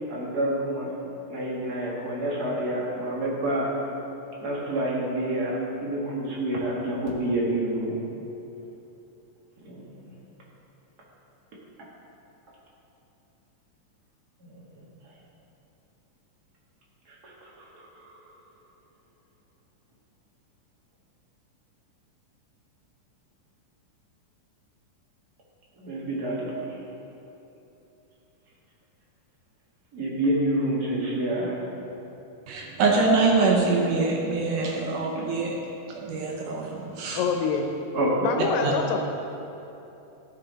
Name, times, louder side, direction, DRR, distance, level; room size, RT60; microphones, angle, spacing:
voice 1, 0.1-0.9 1.3-3.7 4.4-8.0 9.6-9.8 14.4-14.8 17.1-17.9 25.8-26.8 29.9-31.6 37.9-38.4, right 1 dB, 45° right, -5 dB, 1.3 m, -28 dB
voice 2, 32.5-35.6 36.0-37.2 38.6-38.7, right 3 dB, 75° right, -1 dB, 2.3 m, -24 dB
voice 3, 37.1-37.7 38.2-39.0, left 5 dB, 90° left, 3 dB, 2.4 m, -25 dB
14.0 x 5.7 x 4.0 m, 2.9 s
omnidirectional pair, 3.9 m